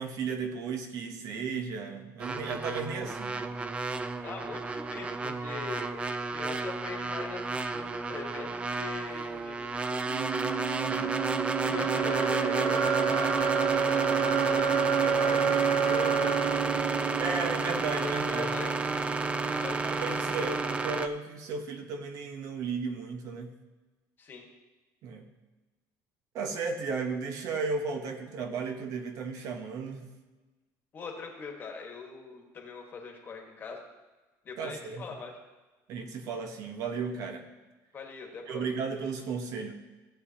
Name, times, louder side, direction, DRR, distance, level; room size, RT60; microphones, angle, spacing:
voice 1, 0.0-3.4 10.9-11.2 17.2-18.5 19.8-23.5 25.0-25.3 26.3-30.0 34.6-35.0 35.9-37.5 38.5-39.7, right 5 dB, 50° right, 5 dB, 1.1 m, -34 dB
sound 1, 2.2-21.1, right 3 dB, 15° right, 0.4 m, -31 dB
voice 2, 4.2-10.2 11.6-17.3 18.0-18.7 19.6-20.7 24.2-24.5 30.9-33.8 34.4-35.3 37.9-38.6, left 5 dB, 30° left, 1 dB, 1.5 m, -42 dB
sound 2, 10.1-18.0, right 8 dB, 80° right, 1.0 m, -29 dB
16.0 x 8.2 x 2.9 m, 1.2 s
cardioid pair, 160°, 7 cm